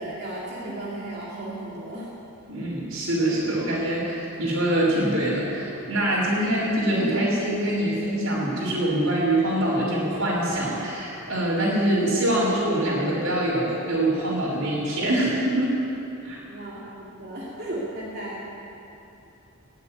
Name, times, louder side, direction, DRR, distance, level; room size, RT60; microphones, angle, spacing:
voice 1, 0.0-2.1 16.4-18.4, right 1 dB, 45° right, -6 dB, 2.7 m, -35 dB
voice 2, 2.5-15.7 16.2-16.4, right 1 dB, 65° right, -11 dB, 4.1 m, -24 dB
18.0 x 7.7 x 9.3 m, 3.0 s
head